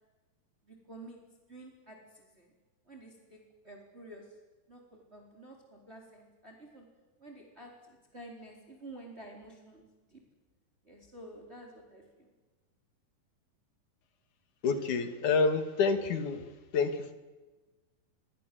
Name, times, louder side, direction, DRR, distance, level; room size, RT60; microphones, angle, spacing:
voice 1, 0.6-1.2 1.5-2.5 2.9-3.4 3.6-4.2 4.7-6.9 7.2-9.8 10.1-10.2 10.8-12.3, right 1 dB, 15° right, 1 dB, 4.2 m, -50 dB
voice 2, 14.6-16.4 16.7-17.1, left 4 dB, 60° left, 8 dB, 3.6 m, -28 dB
27.5 x 24.0 x 7.8 m, 1.2 s
omnidirectional pair, 4.0 m